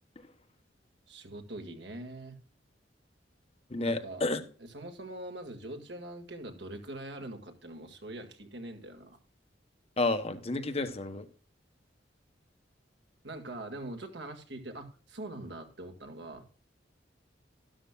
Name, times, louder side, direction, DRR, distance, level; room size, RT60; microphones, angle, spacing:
voice 1, 1.1-2.4 3.8-4.2 4.6-9.2 13.2-16.5, right 1 dB, 70° right, 5 dB, 1.8 m, -43 dB
voice 2, 3.7-4.4 10.0-11.2, left 2 dB, 35° left, 9 dB, 1.1 m, -30 dB
12.5 x 12.0 x 2.3 m, 0.39 s
head